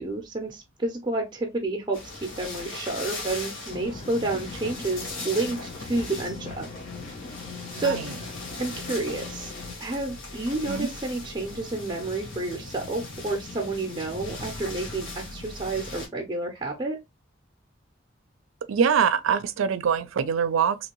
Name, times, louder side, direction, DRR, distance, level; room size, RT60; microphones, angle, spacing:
voice 1, 0.0-6.7 7.7-8.0 8.6-9.5 9.8-17.0, right 2 dB, 20° right, 0.5 m, -30 dB
sound 1, 1.9-16.1, left 2 dB, 80° left, 1.3 m, -39 dB
sound 2, 3.7-9.7, left 4 dB, 30° left, 0.4 m, -40 dB
voice 2, 7.8-8.1 10.7-10.9 18.7-20.8, right 7 dB, 80° right, 0.4 m, -24 dB
2.9 x 2.6 x 2.9 m
head